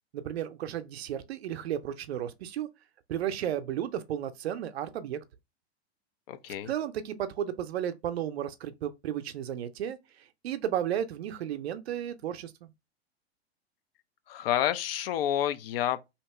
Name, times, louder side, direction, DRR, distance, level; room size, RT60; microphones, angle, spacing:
voice 1, 0.1-2.7 3.1-5.2 6.6-10.0 10.4-12.7, right 10 dB, 65° right, 0.6 m, -33 dB
voice 2, 6.3-6.7 14.3-16.0, left 11 dB, 60° left, 0.5 m, -29 dB
2.9 x 2.8 x 3.3 m
figure-of-eight pair, 95°, 34 cm